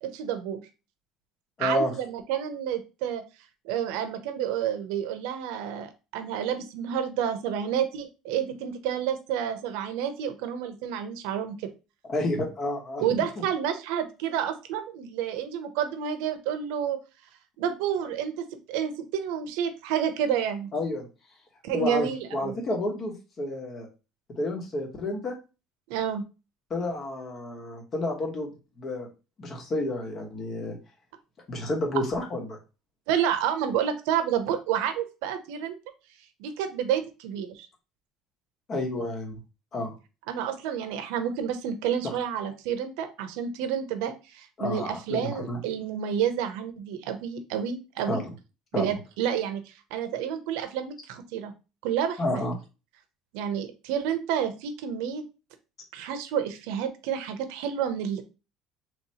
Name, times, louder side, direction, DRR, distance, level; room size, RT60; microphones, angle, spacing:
voice 1, 0.0-0.6 1.6-3.2 3.6-11.7 13.0-17.0 17.6-20.7 21.6-22.6 25.9-26.2 33.1-35.8 36.4-37.7 40.3-48.2 48.7-51.5 51.8-52.4 53.3-55.2 55.9-58.2, right 9 dB, 85° right, 8 dB, 0.7 m, -29 dB
voice 2, 1.6-1.9 12.1-13.1 20.7-21.1 21.7-23.9 24.4-25.3 26.7-29.1 29.4-30.8 31.5-32.6 38.7-39.4 39.7-39.9 42.0-42.1 44.6-45.6 48.1-48.3 48.7-48.9 52.2-52.5, left 1 dB, 35° left, 2 dB, 1.2 m, -30 dB
3.2 x 2.9 x 4.2 m, 0.30 s
cardioid pair, 130°, 0 cm